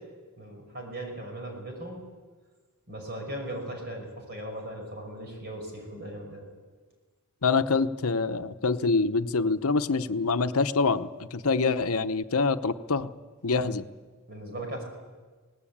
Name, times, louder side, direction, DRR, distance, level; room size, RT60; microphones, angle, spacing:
voice 1, 0.4-2.0 2.9-6.4 13.6-13.7 14.3-14.8, right 1 dB, 45° right, 2 dB, 6.1 m, -38 dB
voice 2, 7.4-13.1 13.4-13.9, left 4 dB, 75° left, 10 dB, 0.9 m, -25 dB
25.0 x 19.0 x 8.7 m, 1.4 s
head